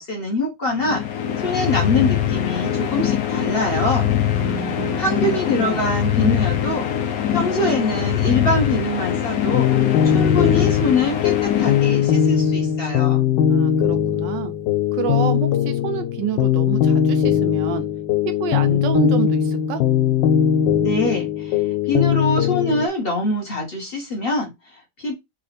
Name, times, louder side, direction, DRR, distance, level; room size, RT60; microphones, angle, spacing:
voice 1, 0.0-4.1 5.0-6.9 7.3-9.7 10.1-13.2 20.8-25.1, left 2 dB, 35° left, 1.2 m, -24 dB
sound 1, 0.8-12.6, left 10 dB, 65° left, 1.0 m, -23 dB
voice 2, 4.3-6.2 13.5-14.5 14.9-17.9 18.2-19.8, right 9 dB, 75° right, 1.3 m, -28 dB
sound 2, 9.5-22.9, left 9 dB, 90° left, 1.3 m, -20 dB
4.3 x 2.4 x 4.1 m
omnidirectional pair, 2.0 m